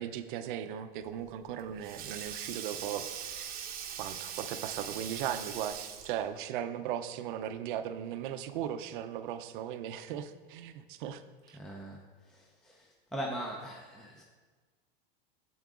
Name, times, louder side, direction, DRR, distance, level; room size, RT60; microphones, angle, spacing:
voice 1, 0.0-3.5 4.0-11.6, right 10 dB, 60° right, 10 dB, 0.6 m, -38 dB
Sink (filling or washing), 1.2-6.3, right 8 dB, 30° right, 0.8 m, -41 dB
voice 2, 11.6-12.0 12.3-14.2, equal, ahead, 0 dB, 0.5 m, -40 dB
8.8 x 7.9 x 2.4 m, 1.4 s
hypercardioid pair, 115°, 29 cm